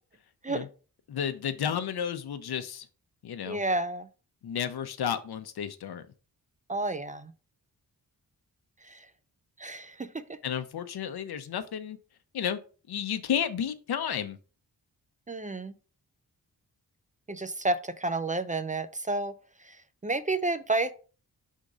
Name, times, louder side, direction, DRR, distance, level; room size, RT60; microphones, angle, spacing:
voice 1, 1.1-2.8 3.2-3.6 4.4-6.0 10.4-12.0 12.3-12.6 12.9-14.4, left 8 dB, 85° left, 0.8 m, -32 dB
voice 2, 3.5-4.1 6.7-7.3 8.9-9.0 9.6-10.2 15.3-15.7 17.3-19.3 20.0-20.9, right 2 dB, 20° right, 0.4 m, -30 dB
5.3 x 3.7 x 4.9 m
wide cardioid pair, 110°, 37 cm